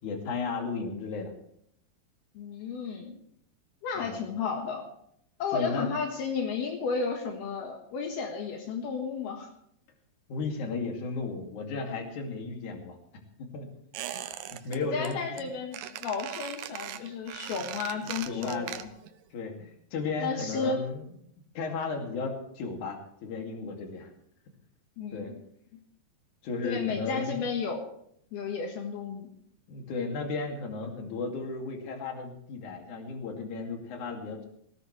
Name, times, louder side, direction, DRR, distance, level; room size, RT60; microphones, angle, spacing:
voice 1, 0.0-1.3 4.0-4.2 5.5-5.9 10.3-13.0 13.4-13.7 14.5-15.5 18.3-18.8 19.3-21.1 21.6-24.1 25.1-25.3 26.4-27.5 29.7-34.5, left 4 dB, 50° left, 2 dB, 3.6 m, -34 dB
voice 2, 2.3-3.2 3.8-4.9 5.4-9.5 14.7-18.9 20.2-20.8 25.0-25.4 26.6-27.8 28.3-29.3, left 5 dB, 75° left, 2 dB, 3.5 m, -33 dB
Squeak, 13.9-14.8 15.0-15.4 15.7-19.1 19.4-19.5, right 11 dB, 75° right, 2.2 m, -39 dB
18.5 x 17.5 x 3.3 m, 0.69 s
omnidirectional pair, 4.6 m